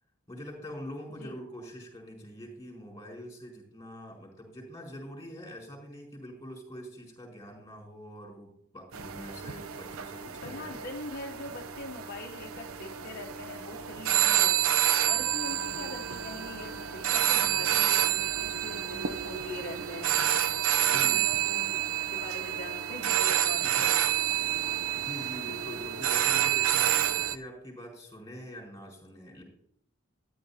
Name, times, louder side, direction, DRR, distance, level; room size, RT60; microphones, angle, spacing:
voice 1, 0.3-10.8 20.8-21.3 23.6-23.9 25.0-29.4, equal, 15° left, -1 dB, 4.5 m, -44 dB
sound 1, 8.9-27.4, right 11 dB, 85° right, 0.6 m, -28 dB
voice 2, 10.4-14.6 15.0-20.1 20.9-21.8 22.1-24.2, left 2 dB, 50° left, 1 dB, 0.9 m, -42 dB
14.0 x 10.5 x 2.8 m, 0.69 s
head